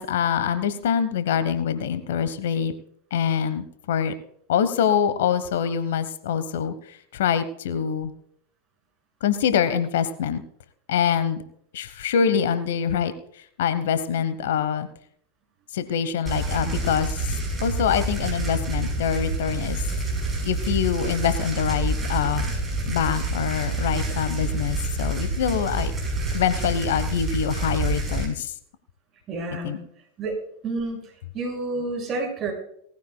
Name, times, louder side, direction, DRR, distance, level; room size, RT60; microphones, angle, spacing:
voice 1, 0.0-2.7 3.1-4.1 4.5-8.1 9.2-10.4 10.9-11.4 11.7-14.9 15.7-19.9 20.4-22.5 22.9-25.9 26.3-28.5 29.6-29.8, left 8 dB, 65° left, 12 dB, 1.1 m, -25 dB
sound 1, 16.3-28.3, right 2 dB, 15° right, 6.8 m, -27 dB
voice 2, 29.3-29.8 30.2-30.4 30.6-32.5, right 3 dB, 30° right, 0 dB, 6.2 m, -30 dB
19.0 x 14.5 x 2.3 m, 0.68 s
figure-of-eight pair, 90°, 0 cm